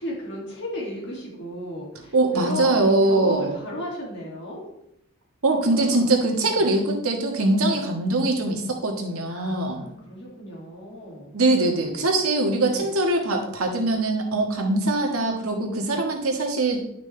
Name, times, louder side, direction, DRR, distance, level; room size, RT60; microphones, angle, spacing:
voice 1, 0.0-4.6 5.6-6.1 6.5-6.7 7.7-7.8 9.3-11.3 12.7-12.9, left 1 dB, 55° left, -3 dB, 2.5 m, -35 dB
voice 2, 2.1-3.5 5.4-9.8 11.3-16.8, right 2 dB, 85° right, 1 dB, 1.7 m, -22 dB
11.0 x 6.0 x 3.4 m, 0.79 s
head